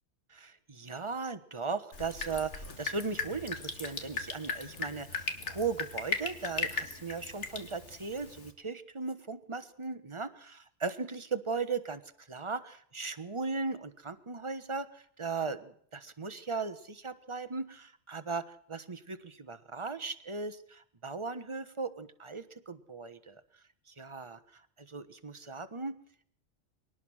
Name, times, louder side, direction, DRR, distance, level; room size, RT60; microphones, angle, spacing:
voice 1, 0.3-23.4 23.9-26.0, right 4 dB, 25° right, 12 dB, 1.2 m, -37 dB
Drip, 1.9-8.5, left 4 dB, 80° left, 2.1 m, -38 dB
23.0 x 18.5 x 6.4 m, 0.62 s
omnidirectional pair, 1.2 m